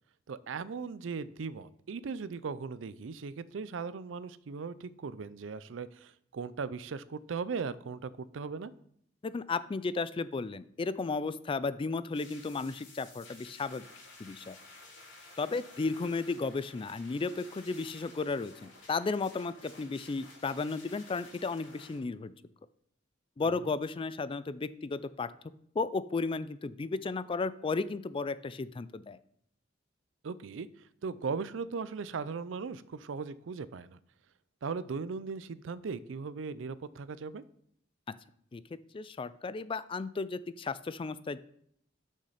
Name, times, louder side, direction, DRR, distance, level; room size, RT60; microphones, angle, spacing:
voice 1, 0.3-8.7 23.6-23.7 30.2-30.7 31.0-34.0 34.6-37.4, right 5 dB, 90° right, 16 dB, 0.4 m, -38 dB
voice 2, 9.2-13.8 14.2-14.6 15.4-22.3 23.4-25.3 25.8-29.2 38.5-38.6 38.9-41.4, left 4 dB, 30° left, 15 dB, 0.3 m, -34 dB
sound 1, 12.1-22.0, left 3 dB, 80° left, 3.4 m, -53 dB
6.5 x 6.3 x 5.7 m, 0.68 s
head